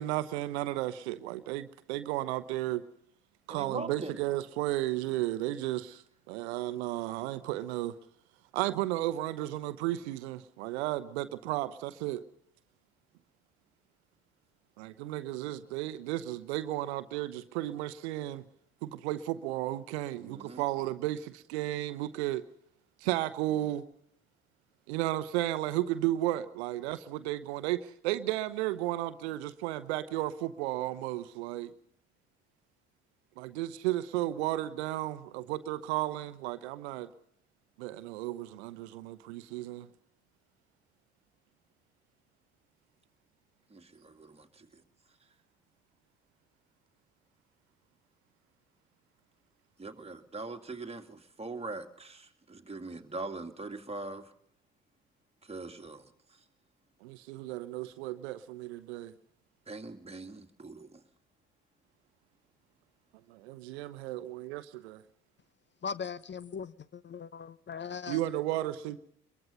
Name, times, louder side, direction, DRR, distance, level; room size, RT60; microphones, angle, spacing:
voice 1, 0.0-2.8 3.5-7.9 8.5-12.2 14.8-18.4 18.8-22.4 23.0-23.8 24.9-31.7 33.4-37.1 37.8-39.9 57.0-59.1 63.3-65.0 68.1-69.0, right 15 dB, 75° right, 0.9 m, -33 dB
voice 2, 3.5-4.2 20.1-20.6 43.7-44.8 49.8-54.3 55.4-56.1 59.7-61.0, right 3 dB, 20° right, 2.3 m, -42 dB
voice 3, 65.8-68.2, left 6 dB, 35° left, 0.9 m, -39 dB
23.5 x 22.5 x 5.6 m
hypercardioid pair, 50°, 33 cm